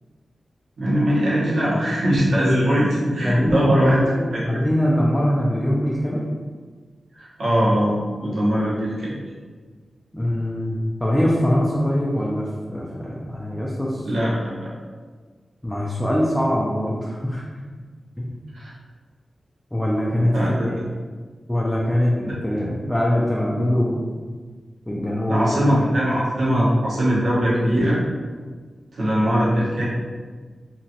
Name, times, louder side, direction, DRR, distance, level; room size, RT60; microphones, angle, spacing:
voice 1, 0.8-4.0 4.3-4.6 7.1-7.9 8.2-9.2 14.0-14.7 18.5-18.7 20.3-20.7 22.2-22.3 25.3-28.0 28.9-29.8, equal, 85° right, -8 dB, 1.0 m, -21 dB
voice 2, 3.2-6.2 10.1-14.0 15.6-17.4 18.2-18.3 19.7-20.8 21.5-22.1 22.4-24.1 24.9-25.9, equal, 10° left, -5 dB, 0.4 m, -23 dB
2.9 x 2.4 x 2.8 m, 1.5 s
cardioid pair, 65°, 0 cm